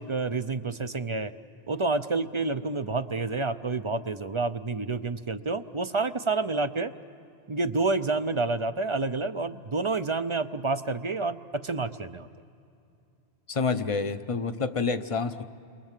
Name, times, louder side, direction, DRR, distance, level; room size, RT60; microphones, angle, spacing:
voice 1, 0.0-1.3 1.7-6.9 7.5-12.3, right 3 dB, 35° right, 11 dB, 0.6 m, -29 dB
voice 2, 13.5-15.4, left 4 dB, 35° left, 9 dB, 0.9 m, -28 dB
29.5 x 23.5 x 7.5 m, 2.6 s
omnidirectional pair, 1.0 m